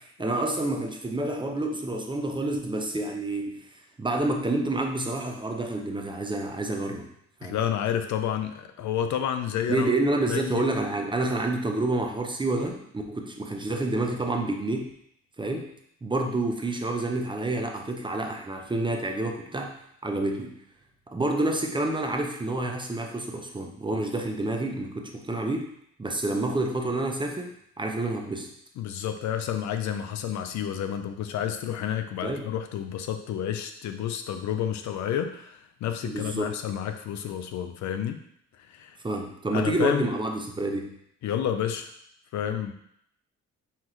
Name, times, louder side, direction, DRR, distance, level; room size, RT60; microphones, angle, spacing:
voice 1, 0.0-7.1 7.4-7.6 9.7-14.9 15.4-15.7 16.0-20.6 21.1-25.7 26.0-28.5 32.2-32.5 36.0-36.6 39.0-40.9, right 2 dB, 15° right, 3 dB, 0.6 m, -28 dB
voice 2, 7.4-9.9 10.3-10.7 28.8-38.2 38.6-39.0 39.5-40.1 41.2-41.9 42.3-42.7, left 9 dB, 70° left, 7 dB, 0.5 m, -30 dB
5.7 x 2.5 x 3.1 m, 0.70 s
cardioid pair, 90°, 30 cm